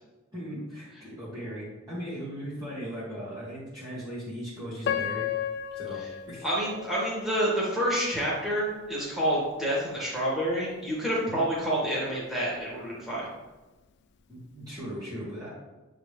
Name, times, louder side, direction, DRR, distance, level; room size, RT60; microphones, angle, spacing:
voice 1, 0.3-5.3 5.7-6.0 6.3-6.4 11.3-11.4 14.3-15.6, equal, 20° right, -10 dB, 1.6 m, -38 dB
Piano, 4.8-7.9 8.4-8.5 9.2-9.4, left 9 dB, 55° left, 0.4 m, -33 dB
voice 2, 6.4-13.3, equal, ahead, -7 dB, 1.9 m, -28 dB
8.1 x 3.8 x 3.3 m, 1.1 s
head